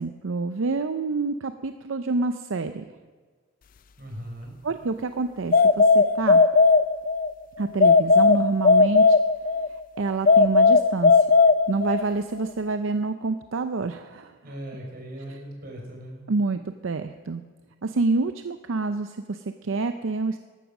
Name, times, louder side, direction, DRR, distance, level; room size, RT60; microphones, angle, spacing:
voice 1, 0.0-2.9 4.6-6.4 7.6-9.2 10.0-11.3 11.7-14.4 16.3-17.4 17.8-20.4, right 3 dB, 75° right, 9 dB, 0.6 m, -27 dB
voice 2, 4.0-4.5 14.4-16.2, equal, 45° right, 0 dB, 4.5 m, -38 dB
sound 1, 5.5-7.3 7.8-9.7 10.3-12.1, left 4 dB, 40° left, 0.3 m, -17 dB
13.5 x 12.5 x 6.0 m, 1.4 s
head